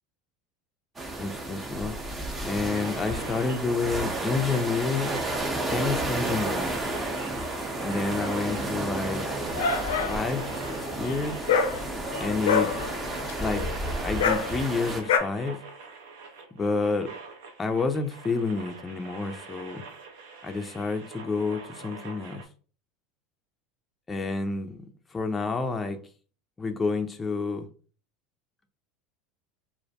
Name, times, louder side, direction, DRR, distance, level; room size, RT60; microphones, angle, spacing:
sound 1, 1.0-15.0, right 2 dB, 20° right, 0.6 m, -32 dB
voice 1, 1.2-1.9 2.4-5.2 5.7-6.8 7.8-9.2 10.1-11.5 12.2-12.7 13.4-13.6 14.0-15.6 16.6-17.1 17.6-19.8 20.4-22.4 24.1-24.8 25.1-26.0 26.6-27.7, left 4 dB, 20° left, 0.4 m, -29 dB
sound 2, 2.7-22.4, right 4 dB, 80° right, 0.5 m, -44 dB
Dog, 9.1-15.2, left 6 dB, 85° left, 0.4 m, -28 dB
2.4 x 2.1 x 2.7 m
hypercardioid pair, 95°, 0 cm